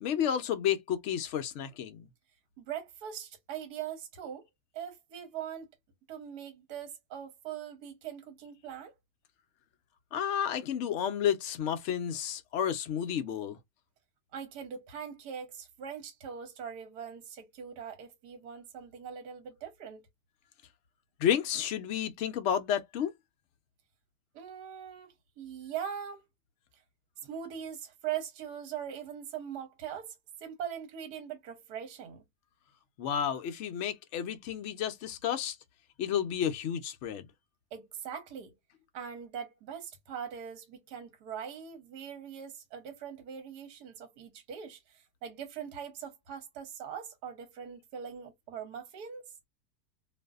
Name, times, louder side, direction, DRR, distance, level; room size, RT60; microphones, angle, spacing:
voice 1, 0.0-2.1 10.1-13.6 21.2-23.1 33.0-35.6 36.0-37.3, left 9 dB, 75° left, 0.6 m, -31 dB
voice 2, 2.6-4.5 4.7-5.7 6.1-8.9 14.3-20.0 24.3-26.2 27.2-32.2 37.7-38.6 38.9-49.3, right 8 dB, 75° right, 1.3 m, -41 dB
2.6 x 2.5 x 2.3 m
omnidirectional pair, 1.7 m